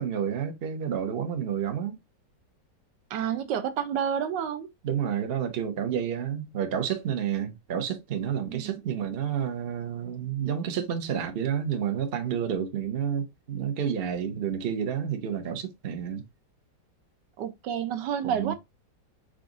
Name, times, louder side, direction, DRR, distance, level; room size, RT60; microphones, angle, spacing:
voice 1, 0.0-2.0 4.8-16.2 18.2-18.5, right 8 dB, 50° right, 0.7 m, -30 dB
voice 2, 3.1-4.7 8.4-8.8 17.4-18.5, right 8 dB, 80° right, 1.3 m, -29 dB
5.0 x 2.4 x 3.7 m
omnidirectional pair, 1.9 m